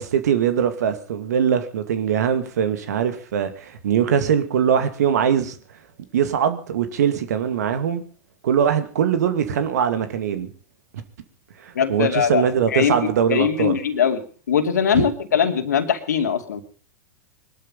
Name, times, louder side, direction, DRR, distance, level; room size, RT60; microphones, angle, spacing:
voice 1, 0.0-5.6 6.1-8.0 8.4-10.5 11.6-13.8 14.9-15.0, right 8 dB, 75° right, 10 dB, 2.3 m, -21 dB
voice 2, 11.7-12.9 13.3-16.6, left 7 dB, 80° left, 7 dB, 2.5 m, -21 dB
21.0 x 12.5 x 5.4 m, 0.41 s
hypercardioid pair, 100°, 9 cm